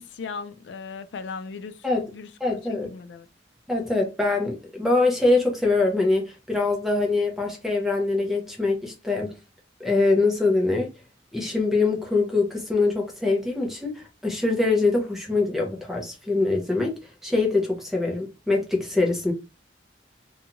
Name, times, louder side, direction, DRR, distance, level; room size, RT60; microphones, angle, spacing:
voice 1, 0.0-2.6 2.9-3.3, left 5 dB, 80° left, 0.4 m, -38 dB
voice 2, 2.4-2.9 3.7-9.3 9.8-10.9 11.3-16.9 17.2-19.3, left 3 dB, ahead, 0.6 m, -23 dB
2.5 x 2.3 x 2.8 m
head